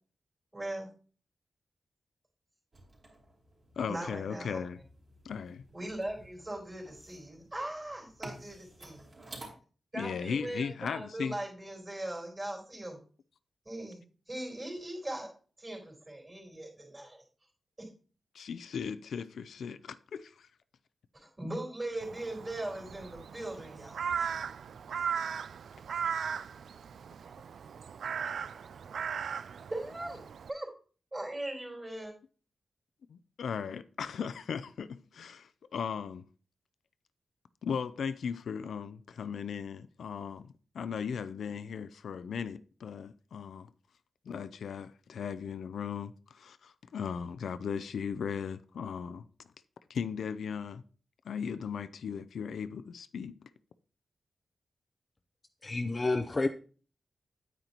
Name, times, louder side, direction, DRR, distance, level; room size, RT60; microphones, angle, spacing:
voice 1, 0.5-0.9 3.9-4.6 5.7-9.1 9.9-13.0 13.7-14.0 14.3-15.3 15.6-17.2 17.8-17.9 21.1-24.0 29.7-30.2 30.5-30.7 31.1-32.1, right 1 dB, 20° right, 3.7 m, -39 dB
sound 1, 2.7-9.5, right 2 dB, 40° right, 3.3 m, -52 dB
voice 2, 3.8-4.8 5.2-5.7 9.9-11.4 18.3-20.5 33.1-36.2 37.6-43.7 44.3-49.2 49.9-50.8 51.2-53.3, left 6 dB, 85° left, 0.4 m, -37 dB
Crow, 22.0-30.5, right 7 dB, 75° right, 0.3 m, -37 dB
voice 3, 55.6-56.5, left 2 dB, 25° left, 0.5 m, -29 dB
9.4 x 9.0 x 2.9 m
wide cardioid pair, 140°, 0 cm